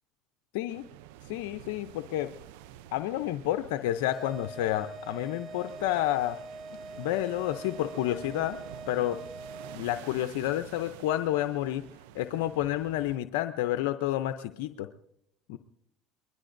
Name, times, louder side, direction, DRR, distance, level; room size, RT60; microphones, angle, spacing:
sound 1, 0.7-13.2, right 12 dB, 80° right, 0.5 m, -49 dB
voice 1, 1.2-2.3 2.9-6.4 7.0-8.6 8.9-9.2 9.7-11.8 12.1-14.9 15.5-15.6, left 13 dB, 80° left, 8 dB, 0.6 m, -30 dB
sound 2, 4.1-10.0, right 2 dB, 55° right, 1.3 m, -44 dB
23.0 x 21.5 x 2.6 m, 0.79 s
supercardioid pair, 100°, 0 cm